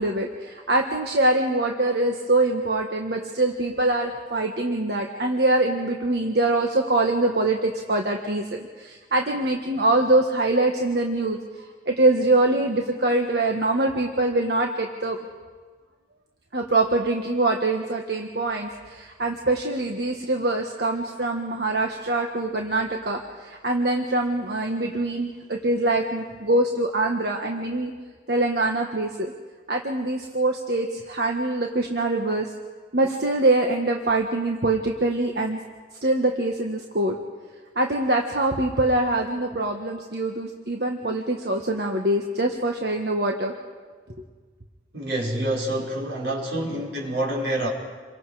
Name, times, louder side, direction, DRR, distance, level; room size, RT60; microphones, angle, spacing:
voice 1, 0.0-11.4 11.9-15.2 16.5-27.9 28.3-29.3 29.7-32.5 32.9-35.6 36.0-37.2 37.7-43.5, right 2 dB, 60° right, 2 dB, 1.4 m, -24 dB
voice 2, 44.9-47.7, right 1 dB, 80° right, -3 dB, 5.1 m, -27 dB
28.5 x 23.5 x 4.9 m, 1.5 s
head